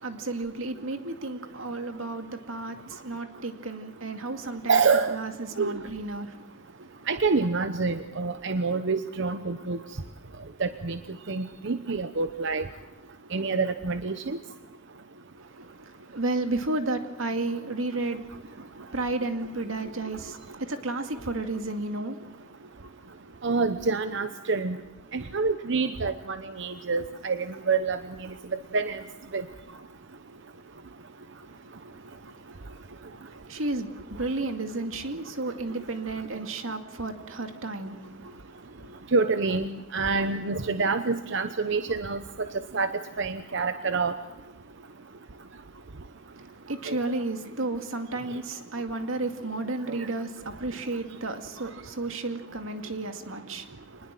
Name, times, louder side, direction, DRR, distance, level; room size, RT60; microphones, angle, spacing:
voice 1, 0.0-4.8 5.1-6.3 16.1-18.2 18.9-22.2 33.5-38.3 38.7-38.9 46.7-53.7, right 2 dB, 90° right, 2.3 m, -32 dB
voice 2, 4.7-5.2 5.6-5.7 7.1-9.8 10.6-11.0 11.3-12.6 13.3-14.4 23.4-24.8 25.1-28.0 28.7-29.0 29.3-29.4 39.1-42.2 42.7-42.9 43.2-44.2 46.9-47.0, right 4 dB, 65° right, 0.9 m, -27 dB
25.5 x 20.5 x 7.7 m
head